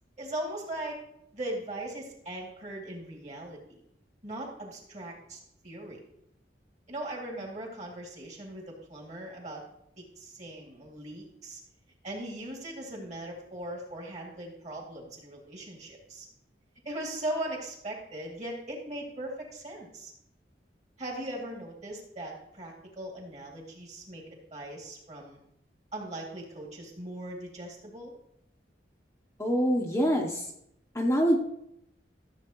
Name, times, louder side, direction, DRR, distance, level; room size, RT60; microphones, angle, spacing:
voice 1, 0.2-1.0 1.3-3.8 4.2-6.0 6.9-9.6 10.0-11.6 12.0-16.3 16.8-20.1 21.0-24.2 24.5-25.4 25.9-28.1, right 1 dB, 40° right, 0 dB, 2.3 m, -39 dB
voice 2, 29.4-30.5 30.9-31.4, equal, 15° left, -1 dB, 0.8 m, -25 dB
13.5 x 7.4 x 3.0 m, 0.77 s
head